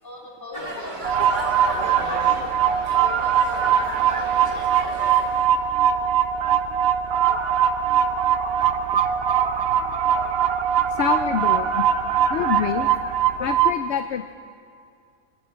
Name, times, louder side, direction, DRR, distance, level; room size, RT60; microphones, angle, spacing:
voice 1, 0.0-5.0, equal, 15° left, -2 dB, 4.2 m, -44 dB
sound 1, 0.5-5.5, right 2 dB, 30° right, 2.4 m, -34 dB
sound 2, 1.0-13.7, right 8 dB, 45° right, 0.9 m, -21 dB
voice 2, 10.9-11.8 12.3-12.9 13.4-14.3, left 9 dB, 60° left, 9 dB, 0.8 m, -26 dB
26.5 x 25.5 x 5.1 m, 2.4 s
omnidirectional pair, 1.6 m